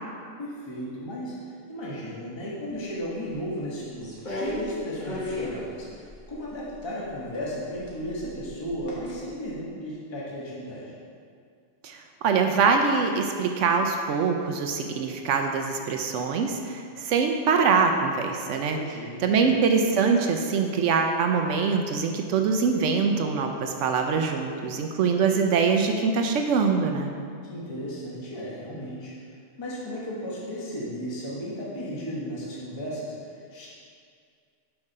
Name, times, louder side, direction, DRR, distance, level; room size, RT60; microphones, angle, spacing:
voice 1, 0.4-5.9 6.3-10.9 18.7-19.5 27.4-29.1 29.6-33.7, equal, 25° left, -6 dB, 1.1 m, -35 dB
sound 1, 4.0-6.8 7.7-9.1 9.5-9.6, left 2 dB, 40° left, 1.3 m, -34 dB
voice 2, 12.2-18.8 19.2-27.1, right 5 dB, 75° right, 4 dB, 0.9 m, -23 dB
6.1 x 4.9 x 5.4 m, 2.2 s
omnidirectional pair, 1.3 m